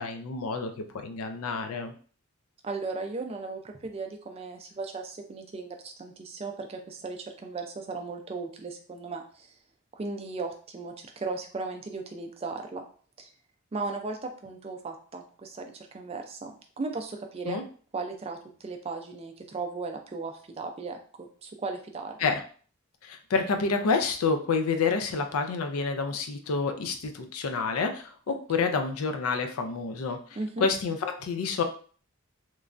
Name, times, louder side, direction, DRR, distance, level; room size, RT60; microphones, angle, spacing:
voice 1, 0.0-1.9 17.5-17.6 22.2-22.4 23.0-30.2 30.6-31.6, left 4 dB, 90° left, 6 dB, 0.4 m, -28 dB
voice 2, 2.6-9.5 9.9-12.8 13.2-13.3 13.7-17.6 17.9-22.3 28.3-28.4 30.4-30.7, right 3 dB, 30° right, 4 dB, 0.3 m, -36 dB
3.1 x 2.2 x 2.4 m, 0.43 s
head